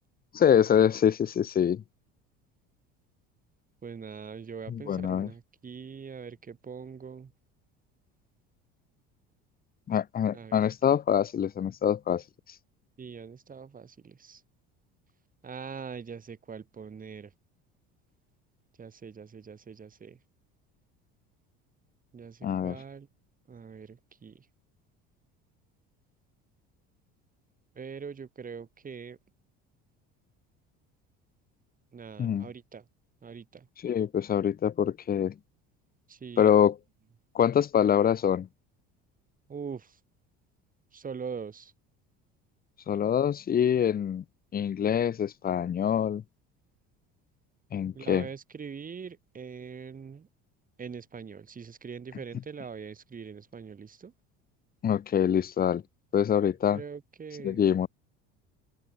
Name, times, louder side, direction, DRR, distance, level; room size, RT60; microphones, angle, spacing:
voice 1, 0.3-1.8 4.7-5.3 9.9-12.2 22.4-22.8 32.2-32.5 33.8-35.3 36.4-36.8 37.3-38.5 42.9-44.2 44.5-46.2 47.7-48.3 54.8-55.8 56.1-56.8 57.4-57.9, left 9 dB, 30° left, 0.9 m, -25 dB
voice 2, 3.8-7.3 10.3-10.6 13.0-14.4 15.4-17.3 18.8-20.2 22.1-23.1 23.5-24.4 27.7-29.2 31.9-32.8 33.2-33.7 36.1-36.5 39.5-40.0 40.9-41.7 47.9-50.3 50.8-54.1 56.7-57.6, right 6 dB, 30° right, 4.8 m, -42 dB
open air
supercardioid pair, 105°, 29 cm